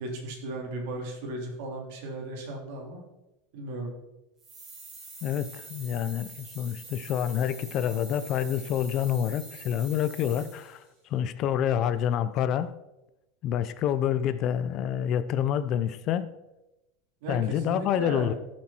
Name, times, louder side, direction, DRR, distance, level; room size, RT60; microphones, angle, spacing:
voice 1, 0.0-3.0 3.5-3.9 17.2-18.4, right 2 dB, 60° right, 0 dB, 3.8 m, -36 dB
sound 1, 4.4-10.8, right 3 dB, 20° right, 3.9 m, -46 dB
voice 2, 5.2-12.7 13.4-16.3 17.3-18.3, left 9 dB, 35° left, 13 dB, 0.5 m, -28 dB
16.0 x 7.4 x 4.4 m, 0.93 s
supercardioid pair, 170°, 0 cm